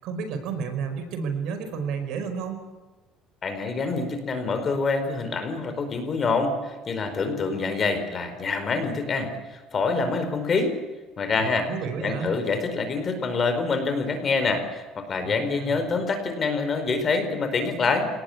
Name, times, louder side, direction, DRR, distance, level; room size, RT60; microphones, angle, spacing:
voice 1, 0.0-2.6 11.7-12.4 15.2-15.8, right 6 dB, 65° right, 8 dB, 5.2 m, -31 dB
voice 2, 3.4-10.8 11.2-11.7 12.0-18.1, left 4 dB, 30° left, 7 dB, 4.8 m, -26 dB
27.5 x 19.0 x 8.6 m, 1.2 s
cardioid pair, 145°, 0 cm